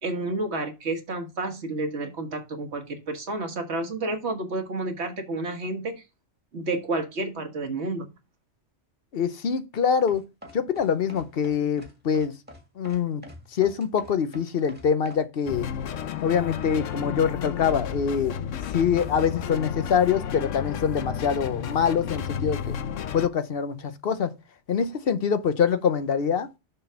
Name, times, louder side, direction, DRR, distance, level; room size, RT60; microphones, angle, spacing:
voice 1, 0.0-6.0 6.5-8.1, right 2 dB, 60° right, 1.7 m, -30 dB
voice 2, 9.1-10.2 10.5-12.3 12.8-13.2 13.5-15.7 16.2-18.3 18.7-22.8 23.1-24.3 24.7-26.5, left 7 dB, 55° left, 0.9 m, -24 dB
sound 1, 10.1-15.3, equal, 10° right, 1.8 m, -46 dB
sound 2, 15.5-23.3, left 8 dB, 85° left, 1.1 m, -32 dB
6.8 x 4.2 x 5.6 m
omnidirectional pair, 1.3 m